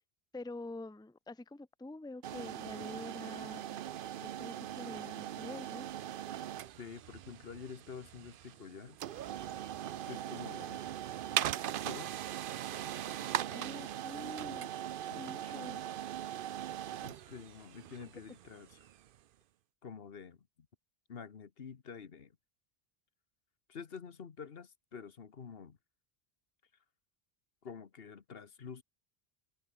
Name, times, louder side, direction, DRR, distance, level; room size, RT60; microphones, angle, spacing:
voice 1, 0.3-3.8 4.2-5.9 13.5-14.7 15.2-15.8, left 2 dB, 5° left, 0.8 m, -46 dB
sound 1, 2.2-19.1, right 11 dB, 65° right, 0.7 m, -40 dB
voice 2, 6.8-9.0 10.1-10.8 11.8-12.2 15.1-15.5 17.0-18.9 19.8-20.5 21.1-22.3 23.7-25.8 27.6-28.8, left 6 dB, 65° left, 1.4 m, -48 dB
omnidirectional pair, 1.1 m